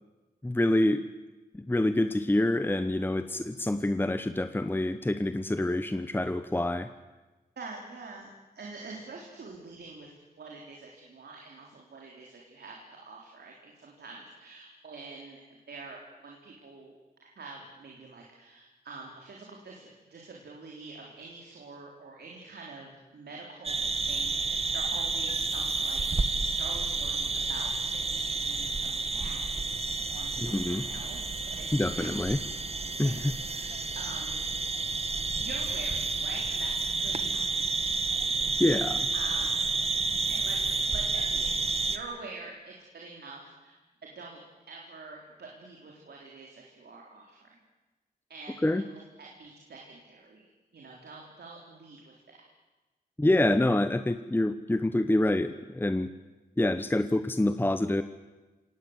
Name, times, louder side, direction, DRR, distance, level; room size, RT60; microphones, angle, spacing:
voice 1, 0.4-1.0 1.5-6.9 30.4-30.8 31.7-32.4 33.0-33.1 38.6-39.1 48.6-48.8 53.2-56.1 56.6-58.0, left 1 dB, 15° left, 10 dB, 1.0 m, -26 dB
voice 2, 7.6-10.1 10.4-26.0 26.6-27.7 28.1-29.4 30.1-32.3 32.7-34.5 35.4-36.7 37.0-37.5 39.1-39.6 40.3-41.6 41.9-43.8 44.0-44.4 44.7-47.6 48.3-52.5, right 3 dB, 85° right, -1 dB, 4.0 m, -46 dB
taman negara crickets and peeps, 23.7-42.0, right 3 dB, 40° right, 1.5 m, -30 dB
27.0 x 19.0 x 8.2 m, 1.2 s
wide cardioid pair, 80°, 17 cm